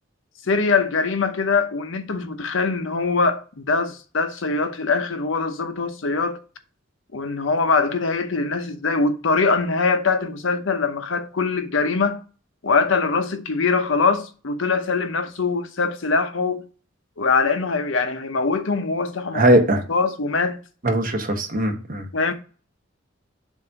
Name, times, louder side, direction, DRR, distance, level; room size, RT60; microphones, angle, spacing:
voice 1, 0.5-6.4 7.1-12.2 12.6-16.7 17.2-19.4 19.9-20.6 22.1-22.3, left 4 dB, 70° left, 0.8 m, -22 dB
voice 2, 19.3-19.8 20.8-22.1, right 1 dB, 45° right, 1.3 m, -19 dB
7.1 x 2.7 x 5.7 m
head